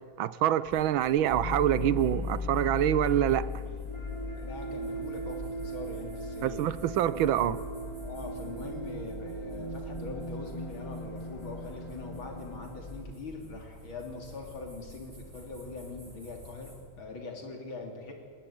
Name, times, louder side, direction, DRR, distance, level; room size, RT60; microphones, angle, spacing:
voice 1, 0.2-3.5 6.4-7.6, right 11 dB, 80° right, 1.5 m, -26 dB
sound 1, 0.6-16.8, right 1 dB, 35° right, 6.9 m, -50 dB
sound 2, 1.3-13.1, left 1 dB, 25° left, 0.7 m, -37 dB
voice 2, 4.3-6.8 7.2-7.5 8.0-18.1, left 3 dB, 70° left, 3.9 m, -42 dB
20.0 x 19.5 x 8.7 m
omnidirectional pair, 2.3 m